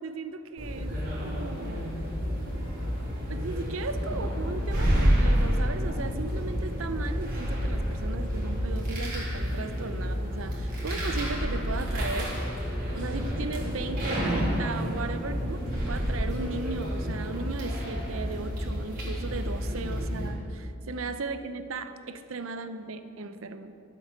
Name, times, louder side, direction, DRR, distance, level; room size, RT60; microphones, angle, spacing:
voice 1, 0.0-2.0 3.3-12.3 12.9-23.7, right 3 dB, 70° right, 10 dB, 0.7 m, -36 dB
sound 1, 0.6-20.3, equal, 45° right, 3.2 m, -29 dB
12.5 x 7.7 x 6.7 m, 2.6 s
head